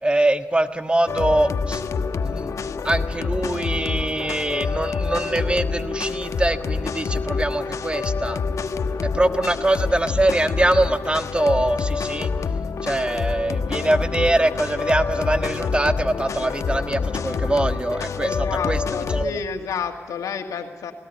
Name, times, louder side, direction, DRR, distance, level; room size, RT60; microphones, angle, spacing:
voice 1, 0.0-1.8 2.2-2.5 2.8-8.4 9.0-12.3 12.8-18.8 19.1-19.4, right 1 dB, 20° right, 9 dB, 1.4 m, -23 dB
sound 1, 1.1-19.3, left 5 dB, 65° left, 1.1 m, -26 dB
voice 2, 18.2-20.9, left 6 dB, 80° left, 5 dB, 2.0 m, -30 dB
19.0 x 18.0 x 9.4 m, 1.5 s
supercardioid pair, 50°, 6 cm